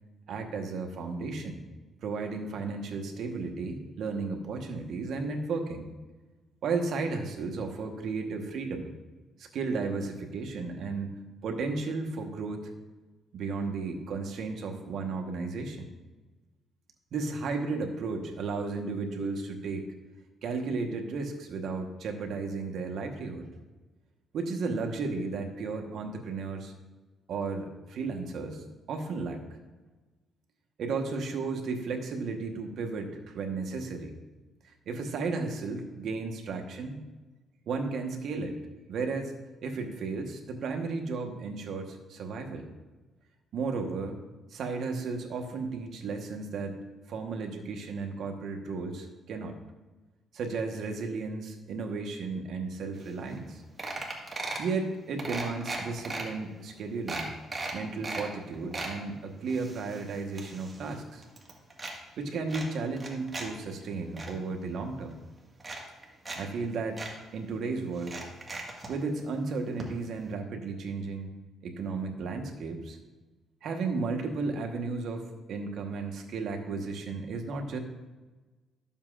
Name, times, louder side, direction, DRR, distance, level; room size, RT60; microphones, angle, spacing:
voice 1, 0.3-1.6 2.0-5.9 6.6-8.9 9.4-12.7 13.3-15.9 17.1-19.9 20.4-23.5 24.3-26.7 27.3-29.4 30.8-34.2 34.9-37.0 37.7-38.6 38.9-39.3 39.6-42.7 43.5-44.2 44.5-46.8 47.1-49.5 50.3-53.6 54.6-57.4 57.7-61.2 62.2-65.2 66.4-67.0 67.3-68.2 68.9-71.3 71.6-73.0 73.6-77.8, right 4 dB, 70° right, 3 dB, 1.1 m, -34 dB
sound 1, 53.1-53.2 53.4-53.5 53.8-54.7 55.2-56.2 56.7-56.8 57.1-58.3 58.5-58.9 59.5-61.0 61.2-61.9 62.5-63.5 63.8-64.3 65.1-65.2 65.6-66.4 66.6-66.7 67.0-67.1 68.0-68.9 69.8-69.9 70.2-70.3, right 2 dB, 25° right, 1.6 m, -37 dB
12.0 x 7.2 x 2.5 m, 1.2 s
cardioid pair, 90°, 0 cm